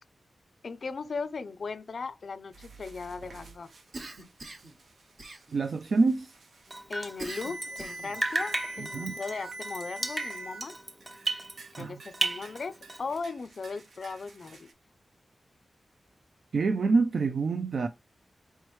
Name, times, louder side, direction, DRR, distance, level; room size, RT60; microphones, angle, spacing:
voice 1, 0.6-3.7 6.9-10.8 11.8-14.7, left 4 dB, 60° left, 0.4 m, -38 dB
sound 1, 2.5-10.6 11.0-11.8 12.0-12.6 12.8-14.7, right 2 dB, 85° right, 0.9 m, -45 dB
Cough, 3.9-4.8 5.2-5.8 7.2-8.2, right 2 dB, 50° right, 1.2 m, -42 dB
voice 2, 5.5-6.3 8.9-9.1 11.8-12.0 16.5-17.9, right 4 dB, 70° right, 0.4 m, -26 dB
Drip, 6.7-7.9 8.1-11.9 12.1-13.2, right 2 dB, 20° right, 0.6 m, -34 dB
4.4 x 3.1 x 3.1 m
wide cardioid pair, 130°, 0 cm